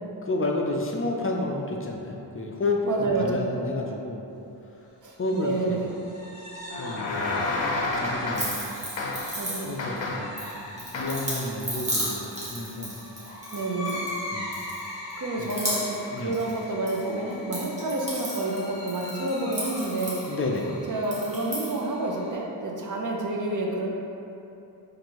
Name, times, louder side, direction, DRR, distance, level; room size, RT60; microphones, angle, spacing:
voice 1, 0.2-4.3 5.2-5.8 6.8-7.7 8.0-8.6 9.6-12.9 14.3-14.6 15.4-15.5 16.0-16.3 20.3-20.7, left 2 dB, 35° left, 0 dB, 0.4 m, -30 dB
voice 2, 2.8-3.6 5.0-5.9 9.4-9.8 13.5-14.1 15.2-20.2 20.9-23.9, right 2 dB, 45° right, -1 dB, 0.6 m, -29 dB
sound 1, 5.1-22.4, left 1 dB, 15° left, 1.1 m, -41 dB
sound 2, 6.7-8.7 9.0-9.4 9.8-10.4 10.9-11.3, left 2 dB, 85° left, 0.6 m, -30 dB
sound 3, 8.4-10.0 10.4-14.2 14.5-15.1 15.4-16.1 16.3-17.0 17.3-20.6 21.0-21.8, equal, 15° right, 1.0 m, -34 dB
4.3 x 2.6 x 2.9 m, 2.8 s
wide cardioid pair, 75°, 44 cm